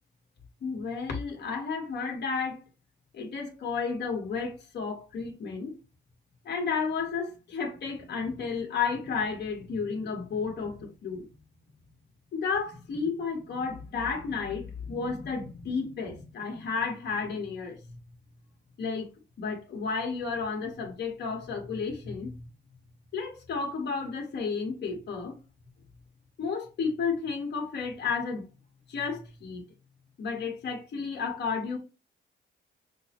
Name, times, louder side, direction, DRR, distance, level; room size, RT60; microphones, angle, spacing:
voice 1, 0.6-2.6 3.1-5.7 6.4-11.2 12.3-17.8 18.8-22.3 23.1-25.4 26.4-28.4 28.9-29.6 30.2-31.8, left 5 dB, 55° left, 1.2 m, -32 dB
6.0 x 2.1 x 2.9 m
cardioid pair, 90°, 20 cm